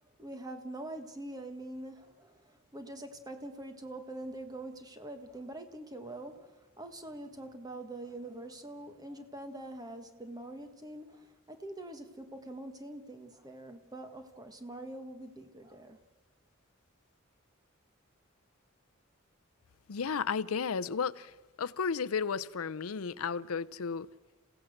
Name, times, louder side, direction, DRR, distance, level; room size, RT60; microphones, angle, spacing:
voice 1, 0.2-16.0, right 1 dB, 20° right, 1.4 m, -44 dB
voice 2, 19.9-21.3 21.6-24.1, left 6 dB, 90° left, 0.6 m, -33 dB
28.5 x 16.5 x 6.6 m
head